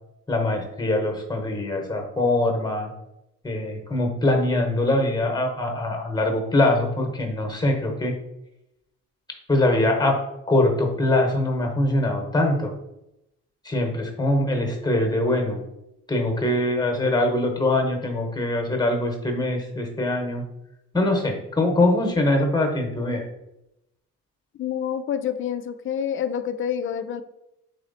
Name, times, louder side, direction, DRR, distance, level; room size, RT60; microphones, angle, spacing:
voice 1, 0.3-2.9 3.4-8.1 9.5-10.2 10.5-12.7 13.6-15.6 16.1-20.4 20.9-23.2, left 1 dB, 15° left, 3 dB, 1.0 m, -23 dB
voice 2, 24.5-27.2, left 8 dB, 45° left, 11 dB, 0.4 m, -27 dB
4.1 x 3.0 x 4.0 m, 0.86 s
cardioid pair, 90°, 30 cm